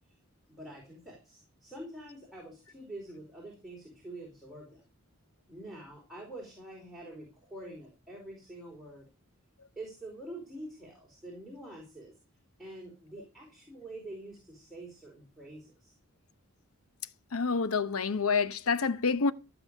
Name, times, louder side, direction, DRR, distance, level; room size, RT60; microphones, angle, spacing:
voice 1, 0.5-4.8 5.5-9.0 9.8-12.1 12.6-15.9, right 1 dB, ahead, 4.6 m, -46 dB
voice 2, 17.3-19.3, left 4 dB, 90° left, 0.8 m, -28 dB
16.0 x 7.1 x 6.4 m
head